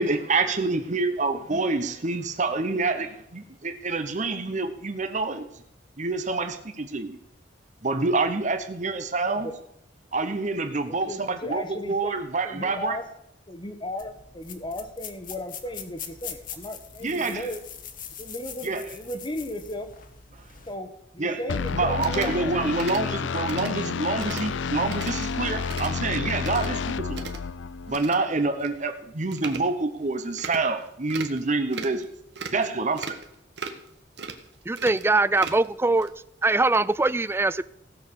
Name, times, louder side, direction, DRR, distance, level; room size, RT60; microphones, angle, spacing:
voice 1, 0.0-5.5 6.0-7.2 7.8-9.5 10.1-11.6 11.9-13.0 17.0-17.5 18.6-18.9 21.2-21.4 21.7-27.3 27.9-32.1 32.5-33.2, right 3 dB, 45° right, 7 dB, 1.1 m, -27 dB
voice 2, 1.3-1.6 9.2-9.5 10.9-12.2 12.4-13.1 13.5-17.6 18.2-19.9 20.7-22.6, left 1 dB, 25° left, 8 dB, 1.3 m, -36 dB
sound 1, 14.0-20.7, left 8 dB, 50° left, 1.3 m, -42 dB
sound 2, 21.5-28.0, left 5 dB, 90° left, 0.5 m, -30 dB
sound 3, 21.5-21.7 22.0-22.4 22.8-23.0 23.5-23.7 24.2-24.5 24.9-25.2 25.5-25.9 26.4-26.7 27.1-27.4 27.9-28.2 28.6-28.7 29.3-29.6 30.4-30.6 31.1-31.4 31.7-32.0 32.4-32.7 33.0-33.3 33.6-33.9 34.2-34.4 34.8-35.7 36.0-36.1, right 5 dB, 65° right, 1.4 m, -37 dB
voice 3, 34.7-36.1 36.4-37.6, right 2 dB, 15° right, 17 dB, 0.4 m, -22 dB
16.0 x 6.6 x 6.8 m, 0.79 s
head